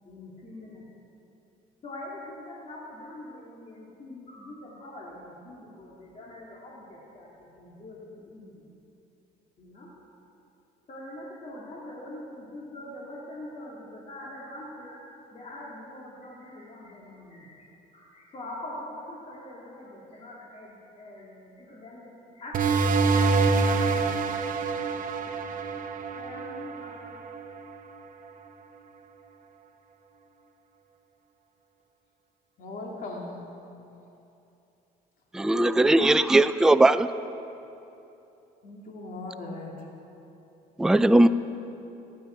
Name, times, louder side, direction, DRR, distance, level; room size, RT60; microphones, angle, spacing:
voice 1, 0.0-0.8 1.8-8.7 9.6-9.9 10.9-15.0 15.3-17.7 17.9-24.4 25.9-27.1, left 1 dB, 40° left, -4 dB, 2.5 m, -43 dB
sound 1, 22.5-27.7, right 4 dB, 55° right, 1.0 m, -26 dB
voice 2, 32.6-33.5 38.6-39.9, left 2 dB, 55° left, -1 dB, 2.6 m, -38 dB
voice 3, 35.3-37.1 40.8-41.3, right 2 dB, 5° right, 12 dB, 0.4 m, -19 dB
24.5 x 9.3 x 4.5 m, 2.9 s
cardioid pair, 110°, 17 cm